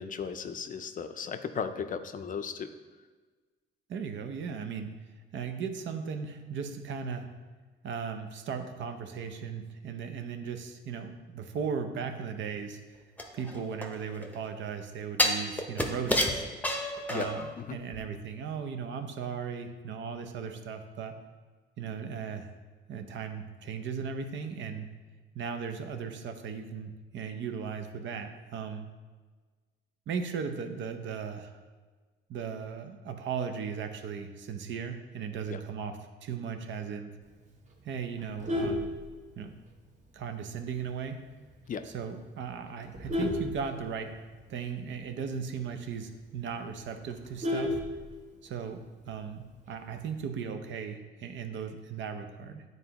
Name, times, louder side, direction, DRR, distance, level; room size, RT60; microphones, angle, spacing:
voice 1, 0.0-2.7 17.1-17.3 17.6-17.8 35.5-35.6 41.7-41.8, left 6 dB, 45° left, 9 dB, 0.5 m, -36 dB
voice 2, 3.9-4.9 5.3-7.3 7.8-13.0 13.3-16.4 17.1-21.1 21.8-22.5 22.9-24.9 25.3-28.9 30.1-31.6 32.3-37.1 37.8-38.9 39.4-39.5 40.1-41.2 41.8-44.1 44.5-47.8 48.4-52.6, right 6 dB, 70° right, 6 dB, 0.7 m, -37 dB
sound 1, 13.2-14.3 15.2-17.5 17.9-18.0, left 1 dB, 10° left, 0.8 m, -29 dB
Vehicle horn car horn honking, 38.2-39.7 40.1-40.4 40.7-40.8 41.2-41.3 41.6-42.0 42.5-44.4 44.7-44.8 45.1-45.2 45.6-45.7 46.1-46.2 46.4-48.5 49.7-50.1, left 1 dB, 40° right, 1.2 m, -33 dB
9.1 x 3.9 x 2.9 m, 1.4 s
cardioid pair, 90°, 20 cm